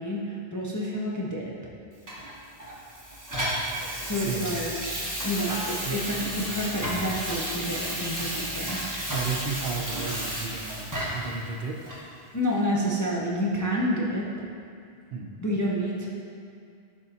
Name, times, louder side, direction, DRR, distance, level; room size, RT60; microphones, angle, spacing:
voice 1, 0.0-1.5 4.0-4.7 5.2-8.8 12.3-14.3 15.4-16.1, equal, 25° left, -4 dB, 0.5 m, -29 dB
Water tap faucet / Sink (filling or washing), 2.1-11.3 11.9-12.0, equal, 20° right, 1.2 m, -32 dB
voice 2, 4.2-4.6 5.8-6.0 9.1-11.8 15.1-15.3, right 5 dB, 70° right, 2 dB, 0.8 m, -33 dB
11.0 x 3.6 x 2.8 m, 2.5 s
omnidirectional pair, 1.0 m